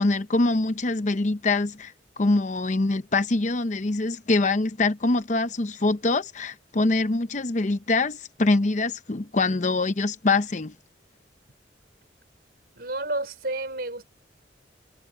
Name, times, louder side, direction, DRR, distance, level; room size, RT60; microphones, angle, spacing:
voice 1, 0.0-10.7, left 2 dB, 40° left, 0.7 m, -24 dB
voice 2, 12.8-14.1, right 2 dB, 55° right, 5.2 m, -30 dB
head